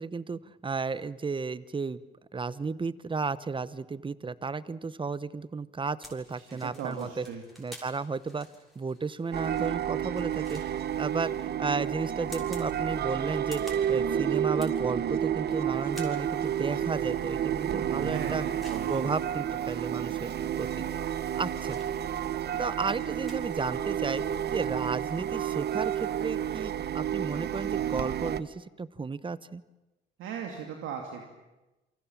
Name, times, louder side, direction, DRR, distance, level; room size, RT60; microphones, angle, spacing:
voice 1, 0.0-2.0 2.3-7.2 7.6-8.5 8.7-10.6 11.0-18.4 18.9-20.9 21.3-21.8 22.6-29.6, right 4 dB, 25° right, 17 dB, 0.9 m, -33 dB
sound 1, 6.0-23.3, equal, ahead, 6.7 m, -53 dB
voice 2, 6.3-7.4 17.5-19.1 30.2-31.2, right 7 dB, 90° right, 2 dB, 2.9 m, -38 dB
sound 2, 9.3-28.4, right 9 dB, 55° right, 1.0 m, -31 dB
29.0 x 24.5 x 7.5 m, 1.0 s
cardioid pair, 90°, 20 cm